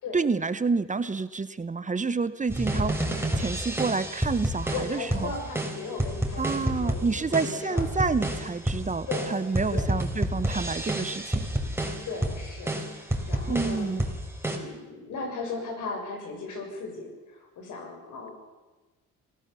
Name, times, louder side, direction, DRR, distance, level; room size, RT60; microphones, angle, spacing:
voice 1, 0.1-5.3 6.4-11.5 13.5-14.0, right 4 dB, 25° right, 14 dB, 1.1 m, -29 dB
sound 1, 2.5-14.6, right 1 dB, 10° right, 4.4 m, -30 dB
voice 2, 4.7-7.9 9.1-9.3 9.7-9.9 12.0-14.0 14.5-18.3, left 4 dB, 80° left, 3 dB, 6.8 m, -37 dB
25.0 x 16.5 x 7.1 m, 1.2 s
cardioid pair, 90°, 30 cm